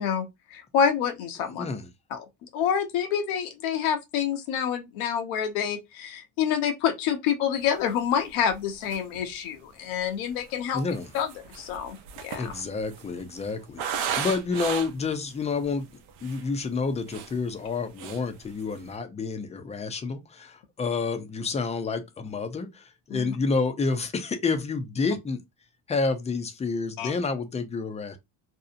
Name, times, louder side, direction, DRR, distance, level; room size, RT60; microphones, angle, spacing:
voice 1, 0.0-1.7 2.1-2.3 2.5-10.8 11.1-12.0 12.2-12.5 23.1-23.4 27.0-27.1, left 8 dB, 80° left, 0.7 m, -27 dB
voice 2, 1.5-1.9 10.7-11.1 12.4-15.9 16.2-25.4 25.9-28.2, left 4 dB, 15° left, 0.3 m, -29 dB
sound 1, 8.0-8.1 8.5-8.6 8.8-9.3 10.1-15.1 15.7-15.8 16.1-16.5 16.9-17.7 18.0-18.3 18.6-18.9, right 7 dB, 75° right, 0.7 m, -35 dB
2.7 x 2.0 x 2.4 m
supercardioid pair, 85°, 47 cm